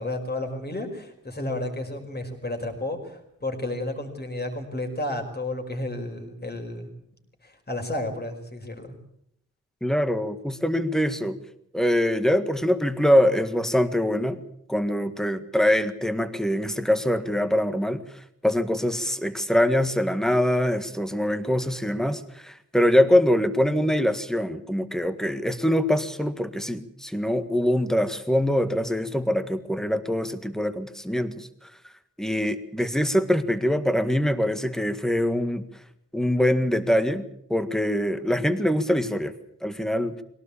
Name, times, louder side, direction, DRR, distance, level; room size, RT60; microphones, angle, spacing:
voice 1, 0.0-6.9 7.4-9.0, left 1 dB, 30° left, 4 dB, 5.2 m, -32 dB
voice 2, 9.8-11.4 11.7-14.4 14.7-18.0 18.4-31.5 32.2-35.7 36.1-37.2 37.5-39.3 39.6-40.2, equal, ahead, 10 dB, 1.7 m, -23 dB
23.0 x 18.0 x 8.6 m, 0.75 s
wide cardioid pair, 115°, 32 cm